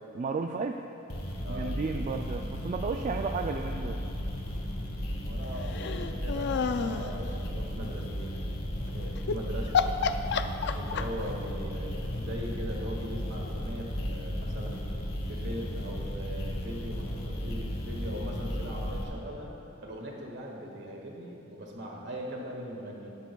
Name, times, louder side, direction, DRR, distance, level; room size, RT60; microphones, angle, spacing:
voice 1, 0.1-0.8 1.5-4.0 10.2-10.6, right 4 dB, 35° right, 4 dB, 0.3 m, -33 dB
sound 1, 1.1-19.0, equal, 80° left, 1.7 m, -35 dB
voice 2, 1.4-1.7 5.2-8.4 8.7-9.8 10.7-14.8 15.3-19.5 19.8-23.2, equal, 60° right, -1 dB, 1.7 m, -40 dB
sound 2, 5.7-7.1 9.2-9.4 9.7-11.3, left 6 dB, 55° left, 0.4 m, -29 dB
17.5 x 10.5 x 2.3 m, 2.9 s
head